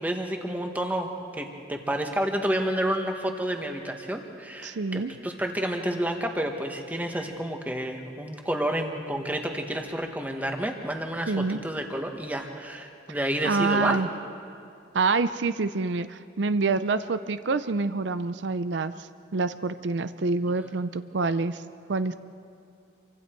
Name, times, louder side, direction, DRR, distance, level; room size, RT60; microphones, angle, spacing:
voice 1, 0.0-14.0, right 1 dB, 10° right, 3 dB, 1.5 m, -30 dB
voice 2, 4.6-5.1 11.3-11.6 13.1-13.2 13.4-14.1 14.9-21.6 21.9-22.1, right 3 dB, 75° right, 12 dB, 0.6 m, -27 dB
28.5 x 24.5 x 4.6 m, 2.4 s
head